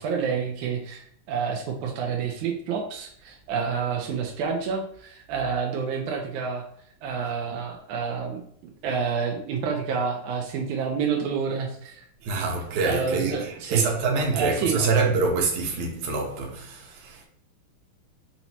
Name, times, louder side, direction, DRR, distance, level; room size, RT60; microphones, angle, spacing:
voice 1, 0.0-6.6 7.0-8.4 8.8-12.0 12.8-13.9 14.3-14.9, right 6 dB, 80° right, 1.7 m, -28 dB
voice 2, 12.2-17.2, right 4 dB, 65° right, 2.2 m, -26 dB
7.5 x 4.1 x 3.0 m
omnidirectional pair, 4.5 m